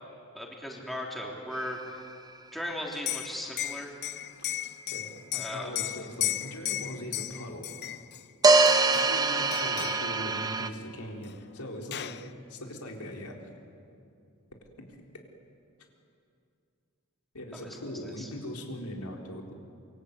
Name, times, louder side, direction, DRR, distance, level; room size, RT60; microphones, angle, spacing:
voice 1, 0.3-2.0 2.5-4.0 5.3-5.7 17.5-18.3, equal, ahead, -1 dB, 3.4 m, -38 dB
sound 1, 1.5-1.6 8.4-10.7, right 3 dB, 15° right, 1.0 m, -23 dB
Liquid, 2.9-8.2 8.7-9.2 9.5-10.1 11.3-11.4 11.6-12.2, left 13 dB, 50° left, 0.7 m, -35 dB
voice 2, 4.9-7.6 8.9-13.4 14.8-14.9 17.3-19.5, equal, 90° left, 1 dB, 4.1 m, -40 dB
27.5 x 23.5 x 8.5 m, 2.5 s
head